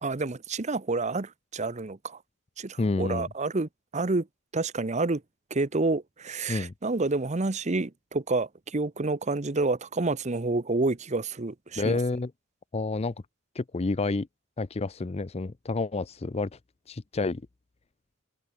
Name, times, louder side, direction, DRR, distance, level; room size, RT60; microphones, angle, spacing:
voice 1, 0.0-2.2 2.6-4.3 4.5-5.2 5.5-12.0, right 3 dB, 35° right, 0.8 m, -29 dB
voice 2, 2.8-3.3 6.5-6.7 11.8-12.3 12.7-13.1 13.6-14.3 14.6-16.5 16.9-17.4, left 3 dB, 30° left, 0.5 m, -29 dB
open air
head